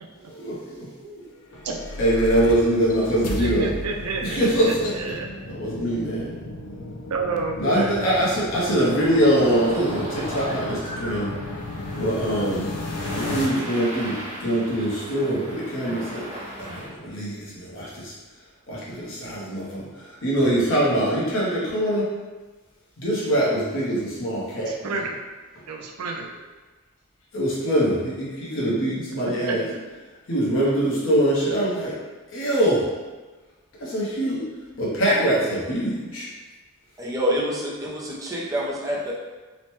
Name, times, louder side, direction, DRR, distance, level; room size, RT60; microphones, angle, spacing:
voice 1, 0.3-1.2 2.0-3.7 4.2-4.9 5.5-6.3 7.6-11.3 11.9-12.7 13.1-16.2 16.6-18.1 18.7-22.1 23.0-24.9 27.3-29.6 30.3-32.0 32.3-32.9 33.8-34.5 34.8-36.3, right 1 dB, 60° left, -6 dB, 0.8 m, -23 dB
sound 1, 1.4-13.5, left 2 dB, 90° left, 0.4 m, -34 dB
voice 2, 3.4-5.3 7.1-8.0 24.7-25.2 25.7-26.3 29.4-29.8, right 4 dB, 90° right, 2 dB, 0.4 m, -30 dB
sound 2, 8.6-16.9, equal, 35° right, 1.1 m, -37 dB
voice 3, 37.0-39.1, equal, 15° right, -4 dB, 0.4 m, -27 dB
3.0 x 2.1 x 3.0 m, 1.3 s
head